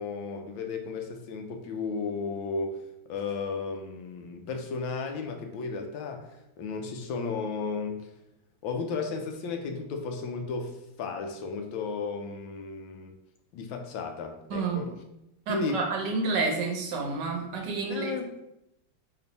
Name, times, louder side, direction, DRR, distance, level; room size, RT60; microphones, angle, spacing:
voice 1, 0.0-2.8 3.1-6.3 6.6-8.1 8.6-13.2 13.5-14.9 15.5-15.9 17.9-18.3, left 4 dB, 80° left, 4 dB, 1.4 m, -34 dB
voice 2, 14.5-14.9 15.5-18.1, right 3 dB, 70° right, 2 dB, 1.3 m, -29 dB
4.3 x 3.1 x 4.0 m, 0.84 s
omnidirectional pair, 2.1 m